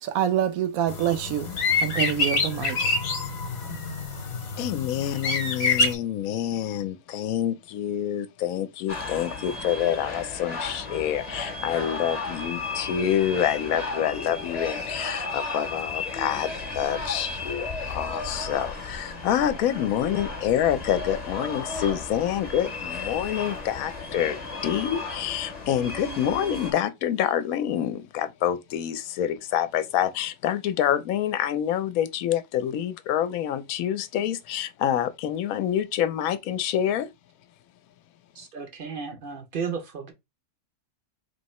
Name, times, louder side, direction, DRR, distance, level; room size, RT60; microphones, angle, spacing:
voice 1, 0.0-2.8, right 10 dB, 75° right, 1.1 m, -26 dB
sound 1, 0.9-6.0, left 3 dB, 50° left, 1.1 m, -26 dB
voice 2, 4.6-37.1, left 10 dB, 75° left, 1.0 m, -27 dB
sound 2, 8.9-26.7, left 3 dB, 30° left, 0.8 m, -34 dB
voice 3, 38.3-40.1, right 6 dB, 45° right, 0.7 m, -34 dB
3.2 x 2.8 x 4.2 m
omnidirectional pair, 1.5 m